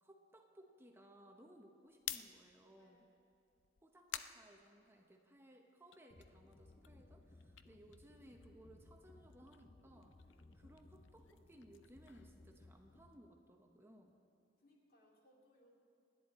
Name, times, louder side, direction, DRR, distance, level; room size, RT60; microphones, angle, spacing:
voice 1, 0.0-3.0 3.8-10.1 10.5-14.2, right 1 dB, 15° right, 2 dB, 0.9 m, -62 dB
sound 1, 1.9-5.4 5.8-8.7 9.0-13.1, left 11 dB, 85° left, 0.6 m, -52 dB
sound 2, 6.1-13.2, left 2 dB, 30° left, 0.7 m, -63 dB
voice 2, 14.6-15.7, left 1 dB, 55° left, -1 dB, 2.8 m, -69 dB
28.5 x 10.0 x 4.2 m, 2.7 s
head